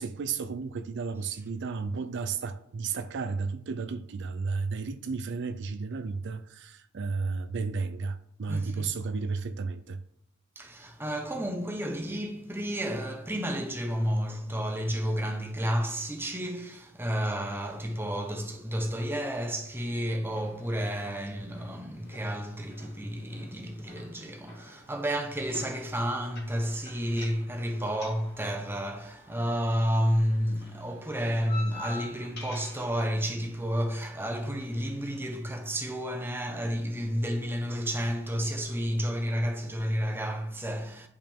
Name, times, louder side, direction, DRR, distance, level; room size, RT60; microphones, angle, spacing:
voice 1, 0.0-10.0, right 4 dB, 60° right, 0.4 m, -33 dB
voice 2, 8.5-8.9 10.6-41.1, equal, 10° right, 0.9 m, -31 dB
sound 1, 20.3-35.3, left 2 dB, 55° left, 2.3 m, -49 dB
10.5 x 5.3 x 3.5 m
head